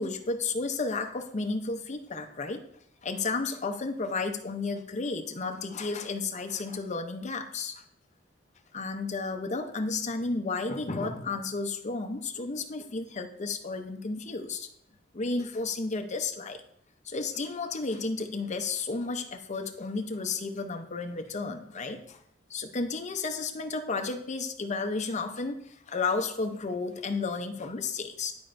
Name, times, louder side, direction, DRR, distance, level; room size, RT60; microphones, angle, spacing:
voice 1, 0.0-2.7 3.0-7.8 8.7-14.7 15.1-16.6 17.0-22.2 22.5-28.4, left 3 dB, 35° left, 5 dB, 0.7 m, -32 dB
11.5 x 4.3 x 2.6 m, 0.68 s
head